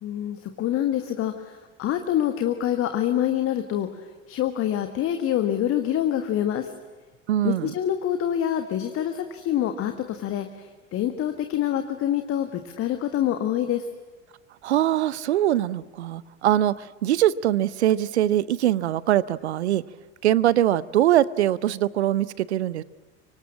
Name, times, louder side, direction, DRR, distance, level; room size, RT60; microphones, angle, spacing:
voice 1, 0.0-6.7 7.4-13.9, left 11 dB, 40° left, 7 dB, 1.7 m, -26 dB
voice 2, 7.3-7.7 14.6-19.8 20.2-22.8, right 12 dB, 65° right, 20 dB, 0.9 m, -22 dB
25.0 x 24.5 x 8.7 m, 1.3 s
figure-of-eight pair, 70°, 35 cm